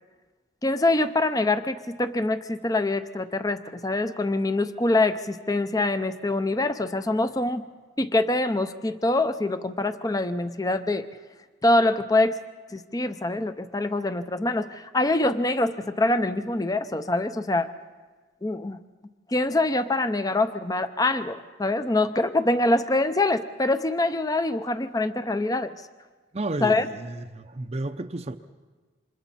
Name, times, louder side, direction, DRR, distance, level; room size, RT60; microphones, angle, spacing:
voice 1, 0.6-7.6 8.0-11.1 11.6-12.4 12.7-17.7 18.4-18.8 19.3-25.8 26.6-26.9, left 2 dB, 20° left, 11 dB, 0.6 m, -24 dB
voice 2, 26.3-28.3, right 2 dB, 30° right, 6 dB, 0.6 m, -32 dB
28.5 x 26.0 x 4.2 m, 1.3 s
head